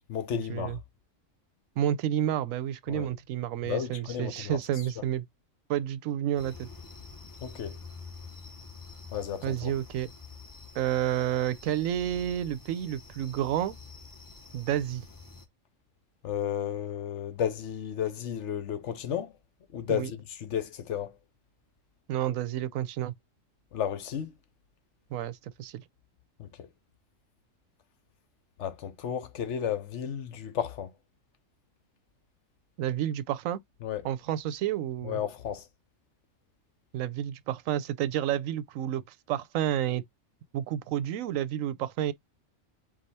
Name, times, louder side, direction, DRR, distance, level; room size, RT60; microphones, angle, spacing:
voice 1, 0.1-0.8 2.9-3.1 3.6-4.6 7.4-7.8 9.1-9.7 16.2-19.3 19.7-21.2 23.7-24.3 26.4-26.7 28.6-30.9 33.8-34.1 35.0-35.7, left 9 dB, 70° left, 1.0 m, -33 dB
voice 2, 1.8-5.2 5.7-6.7 9.4-10.1 10.7-13.7 14.5-15.0 19.9-20.1 22.1-23.1 25.1-25.8 32.8-33.6 34.0-35.2 36.9-40.0 40.5-42.1, right 11 dB, 85° right, 1.0 m, -30 dB
sound 1, 6.4-15.5, left 4 dB, 20° left, 0.7 m, -47 dB
4.9 x 2.3 x 4.0 m
omnidirectional pair, 1.3 m